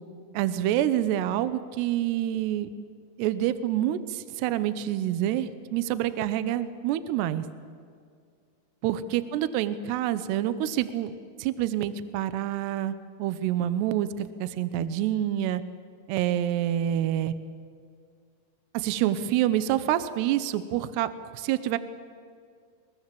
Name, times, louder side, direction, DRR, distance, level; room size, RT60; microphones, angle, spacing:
voice 1, 0.3-2.7 3.2-7.4 8.8-15.6 16.1-17.3 18.7-21.8, right 12 dB, 75° right, 13 dB, 2.7 m, -27 dB
23.5 x 22.0 x 7.6 m, 2.2 s
omnidirectional pair, 5.2 m